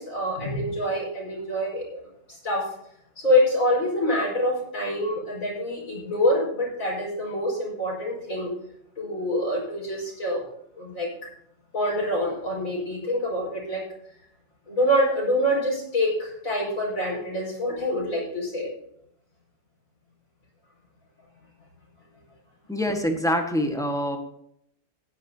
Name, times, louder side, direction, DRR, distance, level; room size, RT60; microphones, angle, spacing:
voice 1, 0.0-2.0 2.3-2.7 3.2-8.5 9.0-10.4 10.8-11.1 11.7-13.8 14.7-18.7, left 1 dB, 45° left, -3 dB, 5.4 m, -26 dB
voice 2, 22.7-24.2, equal, ahead, 3 dB, 1.1 m, -25 dB
15.5 x 11.0 x 2.8 m, 0.74 s
omnidirectional pair, 2.0 m